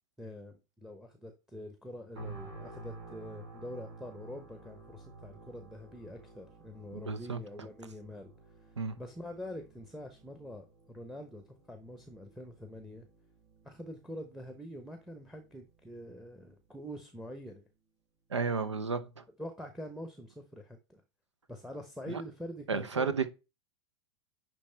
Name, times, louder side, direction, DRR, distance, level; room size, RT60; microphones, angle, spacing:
voice 1, 0.2-8.3 8.6-13.1 13.6-17.7 19.4-21.0 21.5-23.2, equal, ahead, 0.9 m, -45 dB
sound 1, 2.1-17.2 17.6-17.8, right 3 dB, 65° right, 3.2 m, -52 dB
voice 2, 6.9-7.4 8.8-9.0 18.3-19.2 22.1-22.2 22.7-23.3, right 5 dB, 90° right, 0.7 m, -32 dB
9.7 x 3.3 x 3.3 m
hypercardioid pair, 90°, 15 cm